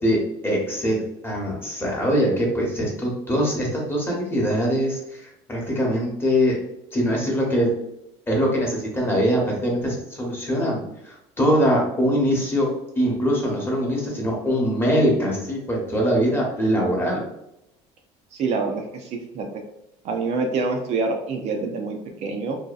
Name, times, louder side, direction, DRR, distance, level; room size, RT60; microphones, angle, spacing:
voice 1, 0.0-6.6 6.9-7.7 8.3-12.7 12.9-17.2, equal, 15° left, -2 dB, 0.8 m, -23 dB
voice 2, 18.3-19.5 20.0-22.6, right 4 dB, 50° right, 3 dB, 0.4 m, -26 dB
2.7 x 2.2 x 2.3 m, 0.82 s
supercardioid pair, 110°, 14 cm